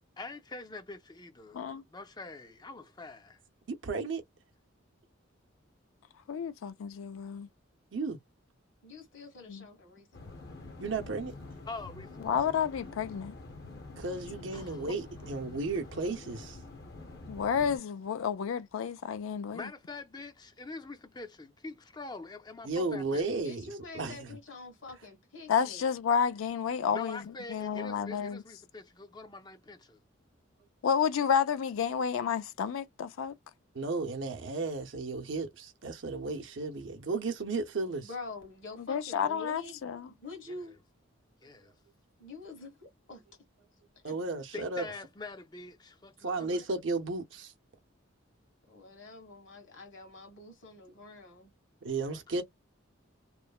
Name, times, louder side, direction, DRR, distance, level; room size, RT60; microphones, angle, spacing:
voice 1, 0.0-3.4 11.7-12.5 14.5-15.3 19.5-23.2 26.9-30.0 40.5-40.6 41.4-41.7 44.5-46.6 52.1-52.4, left 3 dB, 20° left, 0.4 m, -45 dB
voice 2, 3.7-4.2 7.9-8.2 10.8-11.3 14.0-16.6 22.6-24.3 33.7-38.1 44.0-44.9 46.2-47.5 51.8-52.4, right 3 dB, 65° right, 0.7 m, -34 dB
voice 3, 6.3-7.5 9.5-9.6 12.2-13.4 17.3-19.7 25.5-27.2 27.5-28.4 30.8-33.3 38.8-40.1, left 7 dB, 85° left, 0.4 m, -30 dB
voice 4, 8.8-10.5 23.3-25.9 38.0-39.8 40.1-40.7 42.2-43.2 43.9-44.2 46.4-46.8 48.7-51.5, left 3 dB, 70° left, 1.5 m, -46 dB
sound 1, 10.1-17.8, left 2 dB, 50° left, 0.7 m, -47 dB
3.0 x 2.1 x 2.3 m
head